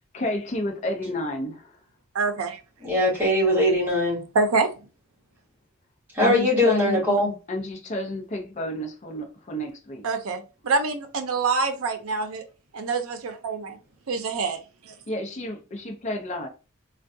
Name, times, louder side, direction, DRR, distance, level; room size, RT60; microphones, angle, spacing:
voice 1, 0.1-1.7 6.2-7.0 7.5-10.0 15.1-16.5, left 1 dB, 35° left, 0.5 m, -31 dB
voice 2, 2.1-2.6 4.3-4.7 10.0-12.4 12.7-13.8 14.1-14.6 14.8-14.9, right 4 dB, 85° right, 0.5 m, -26 dB
voice 3, 2.8-4.2 6.2-7.3, left 1 dB, 10° right, 1.4 m, -21 dB
3.4 x 2.2 x 2.6 m
head